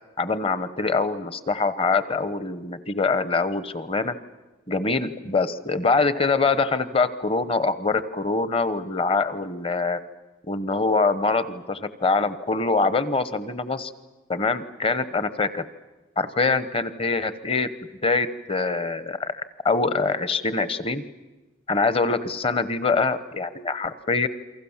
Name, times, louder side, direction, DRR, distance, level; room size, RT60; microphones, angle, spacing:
voice 1, 0.2-4.1 4.7-10.0 10.5-13.9 14.3-15.6 16.2-17.7 18.0-21.0 21.7-24.3, left 4 dB, 30° left, 14 dB, 1.0 m, -24 dB
28.5 x 24.0 x 7.3 m, 1.1 s
head